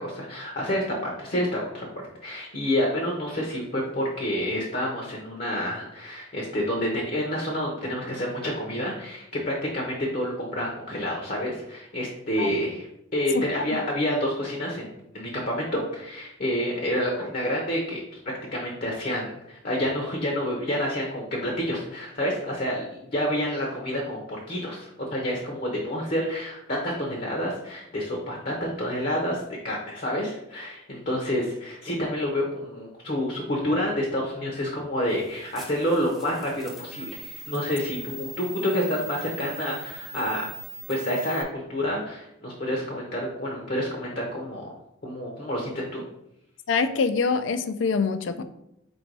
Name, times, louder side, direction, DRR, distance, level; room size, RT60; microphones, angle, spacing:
voice 1, 0.0-1.9 2.2-12.9 13.1-18.0 18.5-40.5 40.9-44.7 45.0-46.0, equal, 45° left, -1 dB, 0.7 m, -28 dB
sound 1, 35.1-41.4, right 1 dB, ahead, 0.5 m, -41 dB
voice 2, 46.7-48.4, left 5 dB, 70° left, 11 dB, 0.4 m, -25 dB
4.4 x 2.6 x 4.6 m, 0.82 s
head